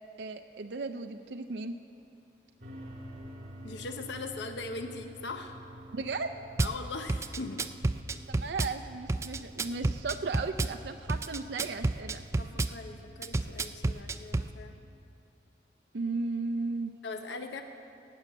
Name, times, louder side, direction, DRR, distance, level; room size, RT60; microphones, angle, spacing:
voice 1, 0.2-1.7 5.9-6.4 8.3-12.2 15.9-16.9, right 3 dB, 80° right, 6 dB, 0.5 m, -35 dB
sound 1, 2.6-14.9, equal, 45° right, 2.3 m, -49 dB
voice 2, 3.6-5.6 6.6-7.7 12.4-14.8 17.0-17.6, left 3 dB, 90° left, 6 dB, 0.8 m, -40 dB
Drum kit / Bass drum, 6.6-6.8 7.1-8.7 9.1-10.7 11.1-12.7 13.2-14.5, right 2 dB, 15° right, 0.3 m, -30 dB
16.5 x 7.2 x 9.0 m, 2.5 s
head